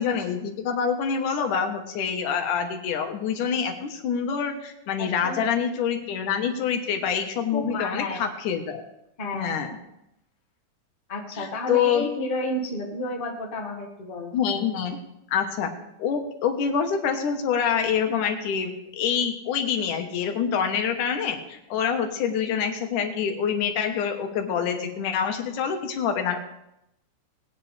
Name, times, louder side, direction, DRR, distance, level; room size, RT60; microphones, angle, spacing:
voice 1, 0.0-8.8 9.3-9.8 11.4-12.1 14.3-15.0 15.3-15.7 16.0-26.4, left 7 dB, 85° left, 5 dB, 2.8 m, -26 dB
voice 2, 5.0-5.5 7.5-8.2 9.2-9.7 11.1-14.4, left 1 dB, 25° left, 0 dB, 1.4 m, -31 dB
19.5 x 10.0 x 3.3 m, 0.86 s
omnidirectional pair, 3.5 m